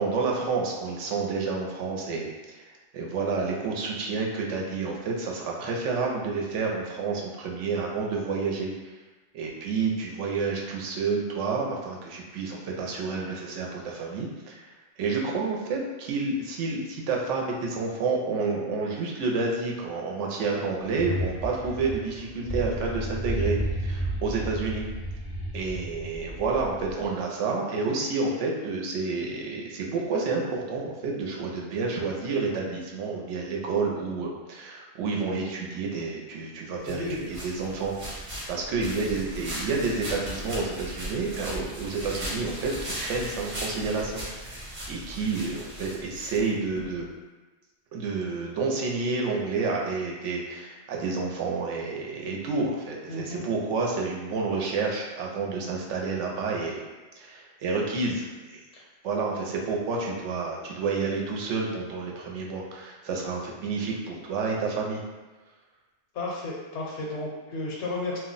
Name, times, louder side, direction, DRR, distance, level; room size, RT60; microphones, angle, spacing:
voice 1, 0.0-2.6 2.9-8.9 9.3-14.7 15.0-24.9 25.5-47.1 47.9-56.9 57.2-58.6 59.0-65.0, right 4 dB, 90° right, -1 dB, 0.9 m, -29 dB
sound 1, 20.9-27.1, right 1 dB, 20° left, 0.4 m, -32 dB
sound 2, 36.8-46.9, equal, 45° right, 0.9 m, -37 dB
voice 2, 36.9-37.3 53.1-53.4 58.7-58.8 66.1-68.2, left 2 dB, 75° left, -3 dB, 0.9 m, -33 dB
2.3 x 2.1 x 3.8 m, 1.2 s
omnidirectional pair, 1.2 m